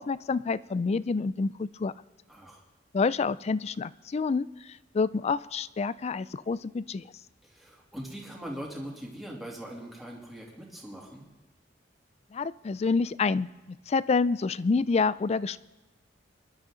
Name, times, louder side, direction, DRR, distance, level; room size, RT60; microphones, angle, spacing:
voice 1, 0.0-1.9 2.9-7.1 12.3-13.5 13.9-15.6, left 4 dB, 35° left, 18 dB, 0.3 m, -28 dB
voice 2, 2.3-2.6 7.4-11.2, right 1 dB, ahead, -3 dB, 2.8 m, -41 dB
24.0 x 11.5 x 3.8 m, 1.2 s
head